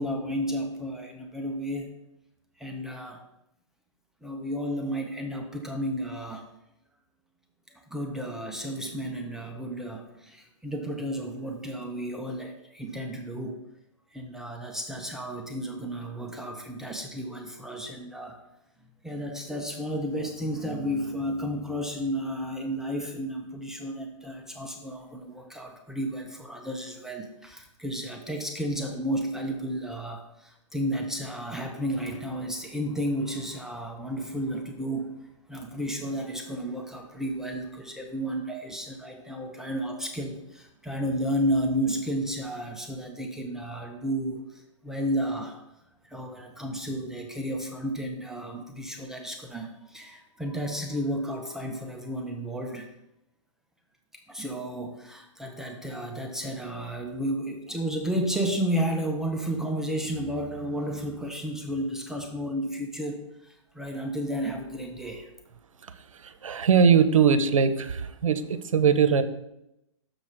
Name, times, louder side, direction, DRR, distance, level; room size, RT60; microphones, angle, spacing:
voice 1, 0.0-1.9 2.6-3.2 4.2-6.5 7.7-13.6 14.1-18.4 19.0-35.1 35.5-45.6 46.0-52.9 54.3-65.3, equal, 5° right, 2 dB, 0.6 m, -32 dB
voice 2, 66.1-69.2, right 6 dB, 90° right, 11 dB, 0.8 m, -21 dB
6.6 x 6.1 x 4.9 m, 0.86 s
hypercardioid pair, 140°, 16 cm